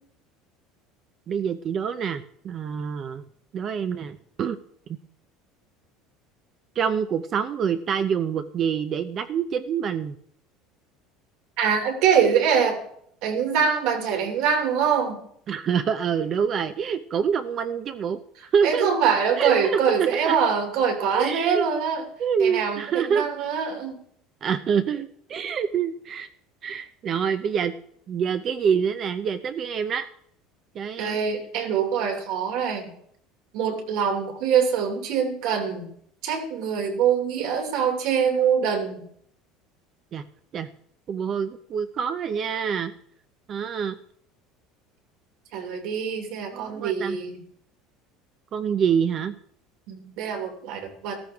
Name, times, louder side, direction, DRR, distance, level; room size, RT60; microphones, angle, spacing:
voice 1, 1.3-3.3 3.5-4.6 4.9-5.0 6.8-10.2 15.5-18.2 18.5-18.9 19.4-20.4 21.1-21.6 22.2-23.3 24.4-26.3 26.6-27.7 28.1-30.1 30.7-31.2 40.1-40.2 40.5-40.7 41.1-42.9 43.5-44.0 46.5-47.2 48.5-49.4, right 7 dB, 35° right, 10 dB, 0.6 m, -26 dB
voice 2, 11.6-12.8 13.2-15.2 18.6-22.0 22.4-24.0 31.0-32.9 33.5-35.9 36.2-39.0 45.5-47.4 49.9-51.2, right 7 dB, 65° right, 3 dB, 2.9 m, -24 dB
14.0 x 13.5 x 3.6 m, 0.67 s
cardioid pair, 155°, 0 cm